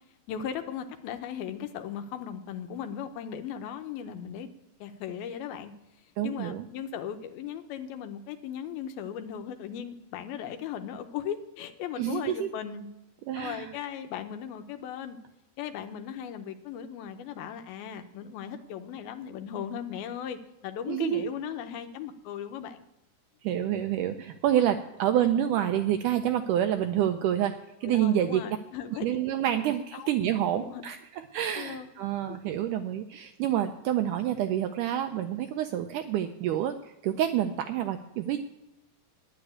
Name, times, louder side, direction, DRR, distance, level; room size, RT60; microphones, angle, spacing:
voice 1, 0.3-4.5 4.8-5.7 6.2-12.9 13.3-15.2 15.6-22.8 25.2-25.3 27.8-29.1 29.9-30.1 30.6-30.8 31.6-31.9 32.3-32.4, left 9 dB, 80° left, 7 dB, 2.7 m, -37 dB
voice 2, 6.2-6.7 12.0-12.5 13.3-13.7 20.9-21.3 23.4-27.5 27.8-28.4 29.0-31.0 31.3-36.8 37.0-38.4, right 11 dB, 85° right, 8 dB, 1.8 m, -28 dB
10.0 x 8.3 x 8.4 m, 0.97 s
omnidirectional pair, 4.3 m